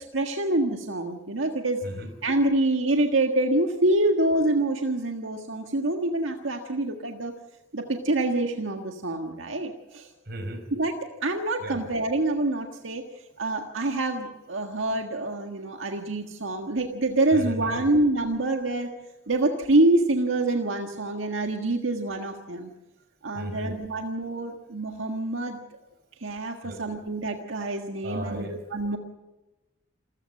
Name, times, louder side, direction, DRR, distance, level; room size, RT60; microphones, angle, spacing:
voice 1, 0.0-1.8 2.2-7.3 7.7-10.1 10.7-11.0 11.2-13.0 13.4-18.9 19.3-22.7 23.2-25.6 26.2-29.0, right 2 dB, 85° right, 4 dB, 1.7 m, -26 dB
voice 2, 10.2-10.7 11.6-11.8 17.3-17.9 23.3-23.8 26.6-26.8 28.0-28.5, equal, 55° right, 8 dB, 4.8 m, -35 dB
27.5 x 15.0 x 7.7 m, 1.1 s
head